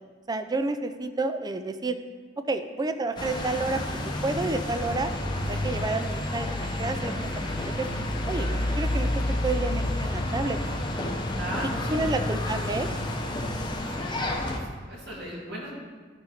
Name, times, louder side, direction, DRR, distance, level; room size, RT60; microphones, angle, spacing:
voice 1, 0.3-2.0 2.5-5.1 5.5-7.9 8.3-9.1 9.4-10.6 11.9-12.9, right 3 dB, 20° right, 9 dB, 0.4 m, -30 dB
sound 1, 3.2-14.6, left 1 dB, 25° left, 0.8 m, -29 dB
voice 2, 11.3-12.2 13.9-15.7, right 1 dB, 65° right, -4 dB, 2.4 m, -38 dB
11.5 x 5.1 x 4.2 m, 1.5 s
head